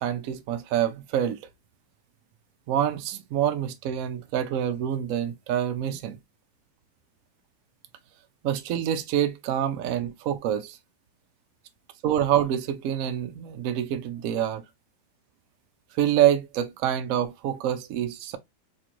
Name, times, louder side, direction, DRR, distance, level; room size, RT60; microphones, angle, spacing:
voice 1, 0.0-1.4 2.7-6.2 8.4-10.8 12.0-14.6 15.9-18.4, right 10 dB, 80° right, 0.7 m, -26 dB
4.2 x 2.4 x 2.9 m
omnidirectional pair, 2.0 m